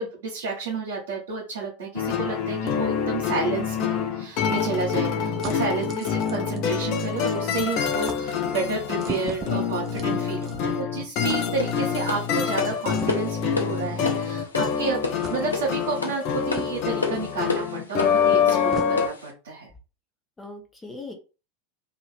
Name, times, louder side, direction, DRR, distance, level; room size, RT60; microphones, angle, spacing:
voice 1, 0.0-15.0 15.3-19.7, right 4 dB, 70° right, -4 dB, 1.2 m, -31 dB
sound 1, 1.9-19.1, left 7 dB, 50° left, 0.8 m, -26 dB
sound 2, 4.0-7.3 7.6-7.8 8.0-8.2 9.0-10.9 11.3-11.4 12.9-13.5 14.2-14.3 15.2-15.4 16.5-17.0 17.9-18.0 18.3-18.9, right 5 dB, 35° right, 0.8 m, -38 dB
sound 3, 11.6-19.3, left 3 dB, 85° left, 0.7 m, -32 dB
voice 2, 14.7-15.1 20.4-21.1, left 1 dB, 15° left, 3 dB, 1.0 m, -39 dB
2.9 x 2.6 x 4.4 m, 0.32 s
figure-of-eight pair, 85°, 0 cm